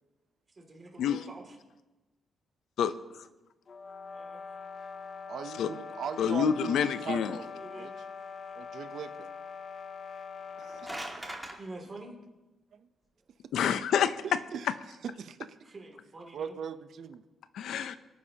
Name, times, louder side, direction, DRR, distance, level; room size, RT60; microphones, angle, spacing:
voice 1, 0.6-1.6 4.1-4.4 7.5-7.9 8.2-8.5 11.6-12.1 15.6-16.5, right 2 dB, 30° right, 1 dB, 2.5 m, -47 dB
sound 1, 3.7-11.2, left 5 dB, 45° left, 0.6 m, -43 dB
voice 2, 5.3-7.9 8.5-9.3 10.6-11.1 11.4-11.5 12.7-12.9 14.2-14.7 15.0-15.6 16.3-17.2, right 7 dB, 65° right, 12 dB, 0.7 m, -40 dB
voice 3, 6.2-7.4 13.5-14.2 17.5-18.0, left 8 dB, 80° left, 12 dB, 0.6 m, -27 dB
sound 2, 10.4-11.6, right 1 dB, 10° right, 1.6 m, -40 dB
22.5 x 9.5 x 2.9 m, 1.1 s
cardioid pair, 125°, 0 cm